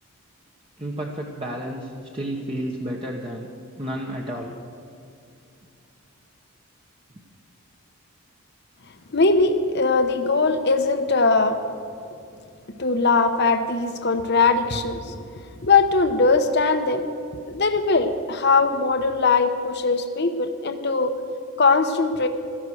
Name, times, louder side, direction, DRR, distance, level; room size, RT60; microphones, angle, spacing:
voice 1, 0.8-3.5 3.8-4.6, right 1 dB, 25° right, -1 dB, 1.1 m, -31 dB
voice 2, 9.1-11.6 12.8-15.3 15.6-17.1 17.5-21.1 21.6-22.3, left 4 dB, 50° left, 7 dB, 0.9 m, -20 dB
16.5 x 13.5 x 6.3 m, 2.5 s
head